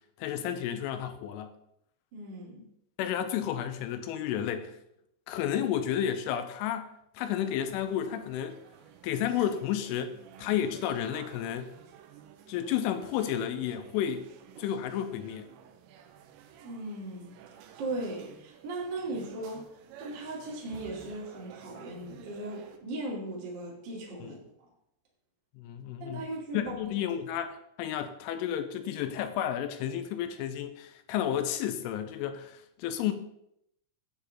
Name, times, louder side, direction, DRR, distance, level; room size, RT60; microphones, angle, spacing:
voice 1, 0.2-1.5 3.0-4.8 5.3-8.6 9.0-11.7 12.5-14.3 14.6-15.5 24.2-24.4 25.6-26.2 26.5-33.1, left 10 dB, 85° left, 9 dB, 3.2 m, -32 dB
voice 2, 2.1-2.7 16.6-17.3 17.8-19.7 20.0-24.4 26.0-26.7, right 2 dB, 35° right, -3 dB, 1.8 m, -38 dB
sound 1, 7.5-22.8, right 8 dB, 80° right, 2.8 m, -53 dB
9.7 x 8.2 x 4.0 m, 0.76 s
omnidirectional pair, 5.6 m